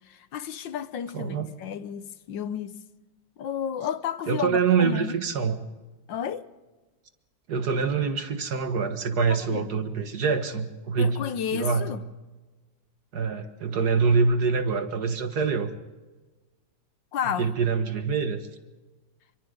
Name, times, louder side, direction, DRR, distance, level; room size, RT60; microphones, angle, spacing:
voice 1, 0.1-2.8 3.4-5.2 6.1-6.5 9.3-9.7 11.0-12.0 17.1-17.5, left 8 dB, 75° left, 1.5 m, -32 dB
voice 2, 1.1-1.5 4.3-5.6 7.5-11.2 11.5-11.9 13.1-15.7 17.4-18.4, right 5 dB, 55° right, 1.9 m, -25 dB
28.5 x 25.0 x 3.9 m
omnidirectional pair, 2.1 m